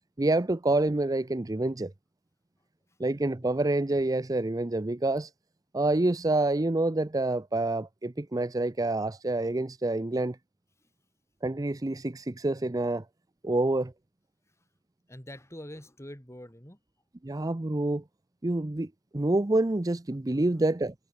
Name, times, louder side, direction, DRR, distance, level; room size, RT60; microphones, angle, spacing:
voice 1, 0.2-1.9 3.0-5.3 5.7-10.4 11.4-13.0 13.4-13.9 17.2-18.0 18.4-20.9, right 2 dB, 20° right, 0.5 m, -27 dB
voice 2, 15.1-16.8 20.3-20.5, left 1 dB, 15° left, 4.4 m, -45 dB
head